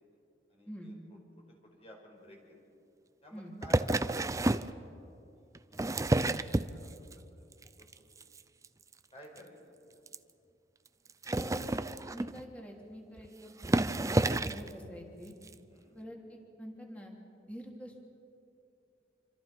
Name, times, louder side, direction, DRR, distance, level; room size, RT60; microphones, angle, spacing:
voice 1, 0.5-0.9 1.6-2.4 3.2-4.5 5.4-7.5 7.9-8.1 9.1-9.6 15.7-16.0, equal, 35° left, -1 dB, 5.0 m, -54 dB
sound 1, 3.6-4.7 5.5-7.1 7.5-7.9 8.2-8.4 8.6-8.7 8.9-9.0 9.4-9.5 10.1-10.2 11.1-12.5 13.2-13.3 13.6-14.7 15.5-15.6, right 2 dB, 20° right, 0.5 m, -30 dB
voice 2, 11.3-14.1 14.4-15.3 15.9-16.2 16.6-17.1 17.5-18.0, equal, 10° left, 0 dB, 3.3 m, -46 dB
26.5 x 26.0 x 5.4 m, 2.6 s
head